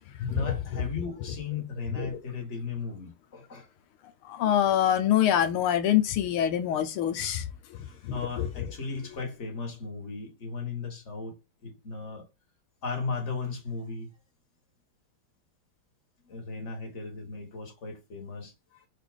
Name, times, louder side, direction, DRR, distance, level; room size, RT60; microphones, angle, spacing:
voice 1, 0.3-3.6 7.7-11.3 11.6-12.2 12.8-14.1 16.3-18.5, left 4 dB, 35° left, 1.9 m, -36 dB
voice 2, 4.3-7.4 8.4-8.5, left 10 dB, 85° left, 1.7 m, -24 dB
5.0 x 4.2 x 5.0 m
omnidirectional pair, 2.3 m